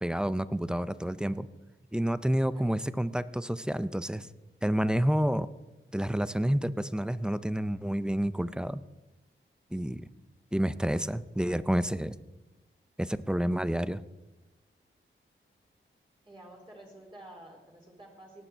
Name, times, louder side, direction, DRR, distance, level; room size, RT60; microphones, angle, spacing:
voice 1, 0.0-1.5 1.9-4.3 4.6-5.5 5.9-8.8 9.7-10.1 10.5-12.2 13.0-14.0, equal, 5° right, 15 dB, 0.5 m, -29 dB
voice 2, 16.2-18.4, right 1 dB, 25° right, -2 dB, 3.1 m, -50 dB
18.0 x 8.8 x 4.5 m, 1.1 s
wide cardioid pair, 80°, 21 cm